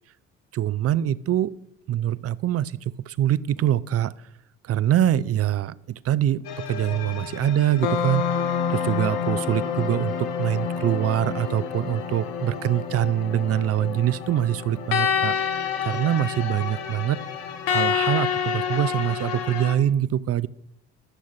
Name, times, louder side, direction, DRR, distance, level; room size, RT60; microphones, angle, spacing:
voice 1, 0.5-1.5 1.9-4.1 4.6-5.8 6.0-15.5 15.8-17.2 17.7-20.5, right 11 dB, 45° right, 19 dB, 0.6 m, -24 dB
sound 1, 6.4-19.7, left 7 dB, 80° left, 1.4 m, -28 dB
13.0 x 6.5 x 5.7 m, 0.78 s
hypercardioid pair, 60°, 33 cm